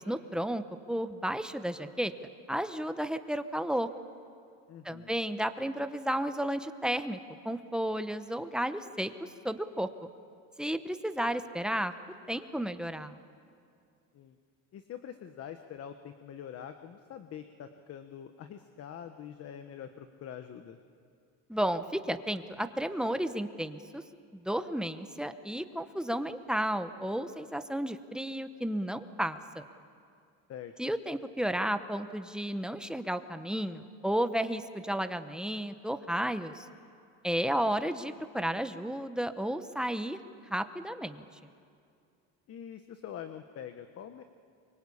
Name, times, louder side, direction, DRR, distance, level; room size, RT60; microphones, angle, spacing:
voice 1, 0.0-2.1 2.5-3.9 4.8-7.2 7.4-9.9 10.6-11.9 12.3-13.2 21.5-24.0 24.3-29.6 30.8-36.7 37.2-40.2 40.5-41.2, right 1 dB, ahead, 9 dB, 0.9 m, -33 dB
voice 2, 4.7-5.2 14.1-14.4 14.7-20.8 30.5-30.7 42.5-44.2, left 9 dB, 45° left, 8 dB, 1.1 m, -45 dB
24.0 x 23.5 x 8.6 m, 2.4 s
cardioid pair, 135°, 34 cm